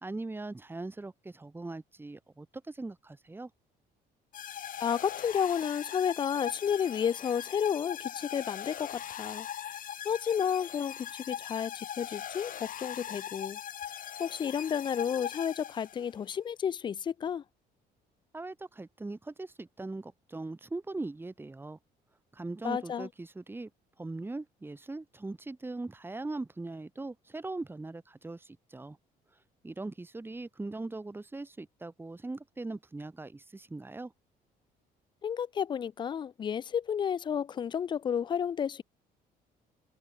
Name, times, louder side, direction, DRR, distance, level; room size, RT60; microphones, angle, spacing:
voice 1, 0.0-3.5 18.3-21.8 22.3-23.7 24.0-29.0 29.6-34.1, right 2 dB, 15° right, 2.0 m, -40 dB
sound 1, 4.3-16.2, left 10 dB, 55° left, 3.4 m, -41 dB
voice 2, 4.8-9.5 10.0-13.6 14.2-17.4 22.6-23.1 35.2-38.8, left 8 dB, 30° left, 0.3 m, -31 dB
cardioid pair, 110°, 17 cm